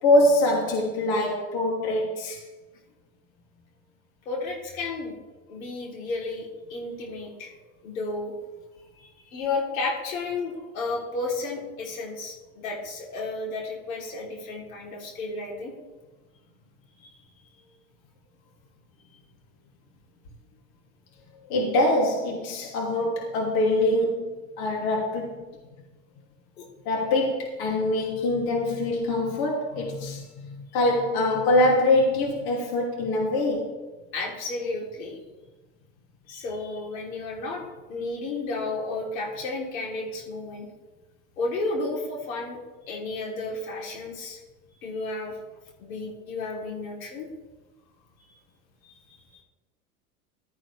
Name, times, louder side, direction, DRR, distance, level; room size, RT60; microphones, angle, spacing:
voice 1, 0.0-2.4 21.5-24.3 24.6-25.4 26.8-33.8, left 1 dB, 60° left, -1 dB, 2.9 m, -24 dB
voice 2, 4.3-5.2 5.5-7.5 7.8-8.3 9.0-15.7 17.0-17.1 26.6-26.7 34.1-35.2 36.3-37.6 37.9-40.7 41.4-42.6 42.9-44.4 44.8-45.4 45.8-47.3 48.9-49.0, left 3 dB, 85° left, -1 dB, 3.6 m, -32 dB
15.5 x 13.0 x 3.4 m, 1.2 s
hypercardioid pair, 90°, 41 cm